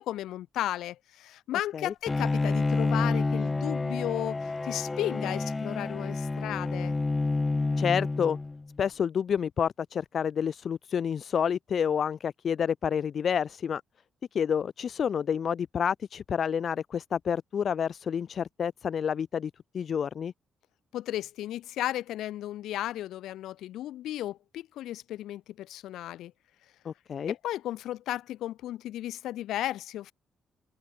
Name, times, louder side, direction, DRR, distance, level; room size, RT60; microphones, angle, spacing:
voice 1, 0.0-7.0 20.9-26.3 27.3-30.1, left 13 dB, 85° left, 6.0 m, -34 dB
Bowed string instrument, 2.1-8.7, left 3 dB, 20° left, 3.5 m, -29 dB
voice 2, 7.8-8.4 8.8-13.8 14.3-20.3 26.8-27.3, left 7 dB, 55° left, 0.7 m, -29 dB
cardioid pair, 90°, 0 cm